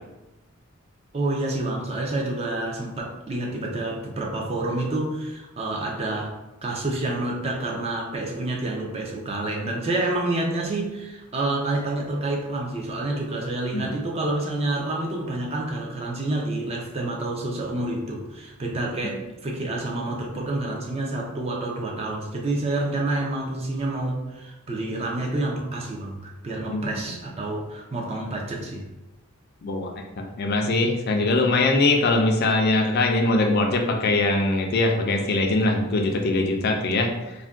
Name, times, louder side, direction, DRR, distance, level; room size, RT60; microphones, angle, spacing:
voice 1, 1.1-6.4 6.6-28.9, right 2 dB, 30° right, -1 dB, 0.4 m, -28 dB
voice 2, 26.7-27.2 29.6-29.9 30.2-37.3, left 2 dB, 50° left, 2 dB, 0.4 m, -22 dB
2.5 x 2.1 x 3.4 m, 1.0 s
head